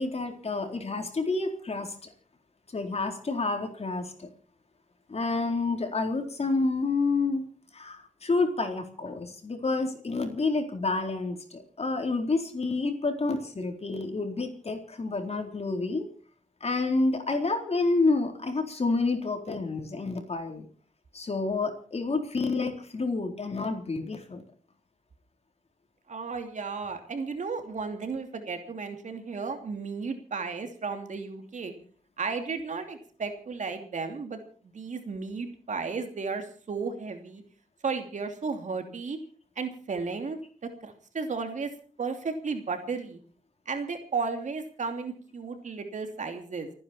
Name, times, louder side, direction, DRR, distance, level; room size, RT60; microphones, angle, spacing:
voice 1, 0.0-1.9 2.7-4.3 5.1-7.4 7.7-16.0 16.6-20.7 21.1-24.4, left 3 dB, 55° left, 4 dB, 4.0 m, -29 dB
voice 2, 26.1-31.7 32.2-37.4 37.8-39.2 39.6-40.4 40.8-41.7 42.0-43.2 43.7-46.7, right 4 dB, 75° right, 5 dB, 2.9 m, -34 dB
29.5 x 9.9 x 4.4 m, 0.43 s
cardioid pair, 45°, 13 cm